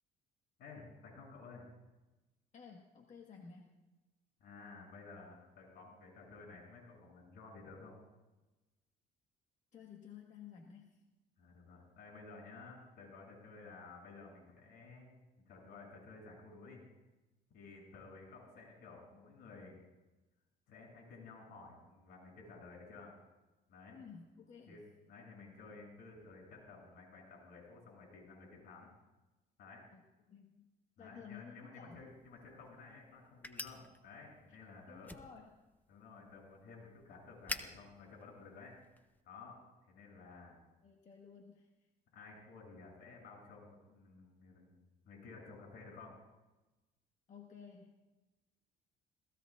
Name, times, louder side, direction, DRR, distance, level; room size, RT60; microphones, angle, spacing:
voice 1, 0.6-1.7 4.4-8.0 11.4-15.1 15.5-16.8 17.5-19.8 20.7-23.2 23.7-24.0 24.7-24.8 25.1-28.9 29.6-29.9 31.0-35.1 35.9-38.8 39.2-40.6 42.1-44.8 45.0-46.2, left 4 dB, 75° left, -1 dB, 7.5 m, -54 dB
voice 2, 2.5-3.8 9.7-11.0 23.9-24.8 29.9-30.0 30.3-30.7 31.0-32.0 34.9-35.5 40.8-41.9 47.3-48.1, left 6 dB, 45° left, 1 dB, 1.7 m, -54 dB
sound 1, 32.1-39.2, left 2 dB, 10° left, 1.0 m, -50 dB
27.0 x 18.5 x 2.5 m, 1.1 s
cardioid pair, 110°, 17 cm